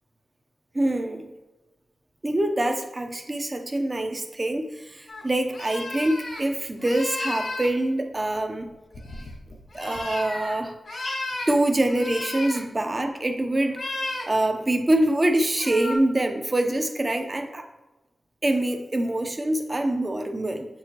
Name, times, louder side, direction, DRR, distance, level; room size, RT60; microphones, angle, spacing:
voice 1, 0.7-1.3 2.2-8.7 9.7-10.8 11.5-13.8 14.3-17.6 18.4-20.7, right 1 dB, 30° right, 5 dB, 0.8 m, -25 dB
sound 1, 5.1-5.2 5.5-6.4 6.8-7.7 8.4-10.5 10.8-11.5 11.9-12.6 13.7-14.3 15.6-16.0, left 2 dB, 70° left, 2.1 m, -33 dB
6.9 x 4.6 x 3.0 m, 1.1 s
cardioid pair, 65°, 0 cm